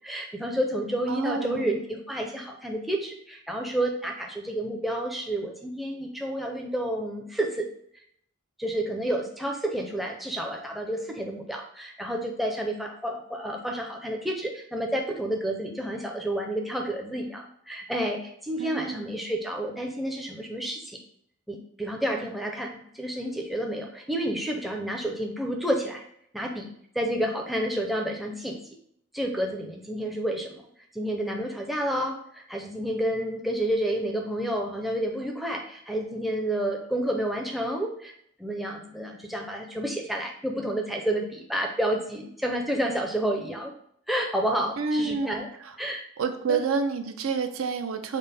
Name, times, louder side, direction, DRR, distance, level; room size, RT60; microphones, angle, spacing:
voice 1, 0.0-7.7 8.6-21.0 21.5-26.0 26.3-28.6 29.1-30.6 30.9-38.1 38.4-43.7 44.1-45.5 45.8-46.0 46.5-46.6, right 1 dB, ahead, 0 dB, 0.4 m, -30 dB
voice 2, 1.1-1.8 18.6-19.1 44.8-45.3 45.6-45.8 46.2-48.2, right 4 dB, 80° right, 7 dB, 0.5 m, -28 dB
5.3 x 2.0 x 4.1 m, 0.68 s
head